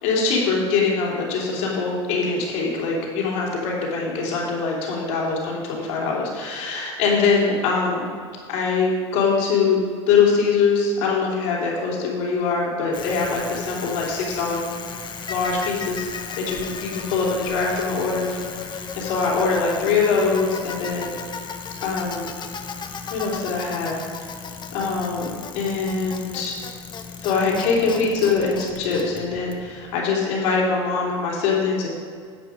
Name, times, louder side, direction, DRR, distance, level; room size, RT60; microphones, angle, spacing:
voice 1, 0.0-8.1 8.5-9.8 10.1-14.6 15.3-16.1 16.3-18.4 18.7-21.1 21.8-22.3 23.1-24.0 24.7-26.5 27.2-31.9, left 4 dB, 65° left, -3 dB, 3.2 m, -23 dB
Bicycle, 12.9-30.0, left 5 dB, 30° left, 1.0 m, -35 dB
11.0 x 7.7 x 5.0 m, 2.1 s
hypercardioid pair, 85°, 15 cm